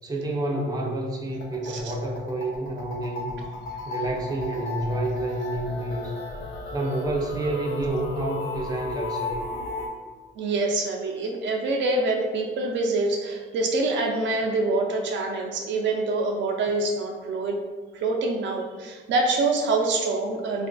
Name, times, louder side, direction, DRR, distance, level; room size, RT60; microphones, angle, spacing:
voice 1, 0.0-3.5 3.9-6.1 6.7-9.4, right 1 dB, 20° right, -1 dB, 0.5 m, -29 dB
sound 1, 1.3-9.9, left 2 dB, 75° left, 0.6 m, -34 dB
voice 2, 10.4-17.6 17.9-20.7, right 2 dB, 65° right, 1 dB, 0.4 m, -25 dB
3.4 x 2.5 x 2.2 m, 1.4 s
cardioid pair, 90°, 20 cm